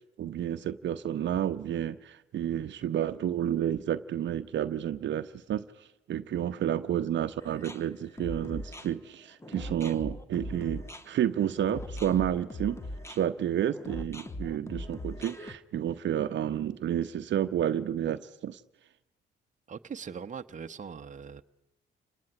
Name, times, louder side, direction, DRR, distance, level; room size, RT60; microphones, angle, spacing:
voice 1, 0.2-12.8 13.1-18.6, right 10 dB, 65° right, 0.9 m, -30 dB
sound 1, 7.4-15.5, left 1 dB, 15° left, 1.6 m, -40 dB
voice 2, 19.7-21.4, right 6 dB, 40° right, 1.1 m, -41 dB
29.5 x 19.0 x 9.9 m
cardioid pair, 90°, 20 cm